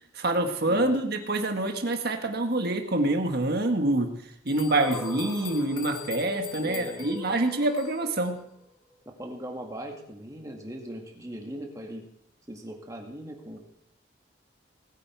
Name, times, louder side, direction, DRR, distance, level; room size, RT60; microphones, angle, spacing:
voice 1, 0.1-4.1 4.4-8.4, right 2 dB, 55° right, 5 dB, 1.6 m, -26 dB
voice 2, 0.7-1.0 6.6-7.1 9.1-12.0 12.5-13.6, equal, 15° right, 1 dB, 2.1 m, -39 dB
sound 1, 4.5-8.2, left 10 dB, 50° left, 1.3 m, -43 dB
sound 2, 4.7-8.9, left 1 dB, ahead, 3.1 m, -42 dB
19.5 x 9.1 x 4.7 m, 0.74 s
head